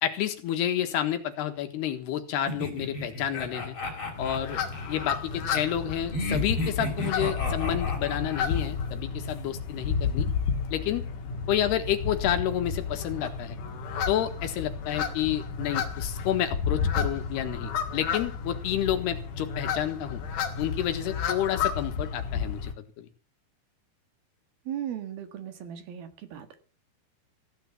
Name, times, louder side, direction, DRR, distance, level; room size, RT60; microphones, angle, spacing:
voice 1, 0.0-3.8 4.2-4.6 4.9-10.3 10.7-11.1 11.5-13.6 14.1-20.2 20.6-22.7 23.0-23.1, left 11 dB, 85° left, 8 dB, 3.7 m, -30 dB
sound 1, 2.5-5.2 6.1-8.7, left 1 dB, 30° left, 4.8 m, -33 dB
sound 2, 4.1-22.7, left 6 dB, 60° left, 3.2 m, -31 dB
voice 2, 24.7-26.5, right 10 dB, 70° right, 9 dB, 3.6 m, -37 dB
16.0 x 9.5 x 7.2 m, 0.39 s
omnidirectional pair, 4.6 m